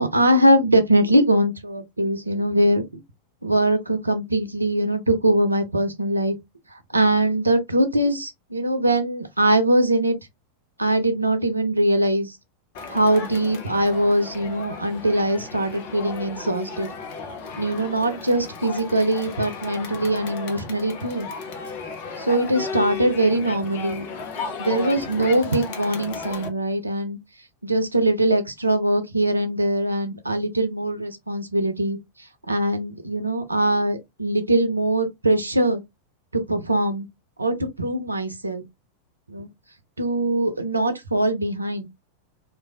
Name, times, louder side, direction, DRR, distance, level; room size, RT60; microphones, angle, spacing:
voice 1, 0.0-2.8 3.4-6.4 6.9-10.2 10.8-12.4 12.9-16.9 17.6-21.3 22.2-24.1 24.6-27.2 27.6-32.0 32.5-35.8 36.3-37.1 37.4-38.6 39.3-39.5 40.0-41.9, right 1 dB, 80° right, 0.6 m, -22 dB
Crowd, 12.7-26.5, left 4 dB, 50° left, 0.7 m, -35 dB
3.1 x 2.5 x 2.3 m
figure-of-eight pair, 90°, 0 cm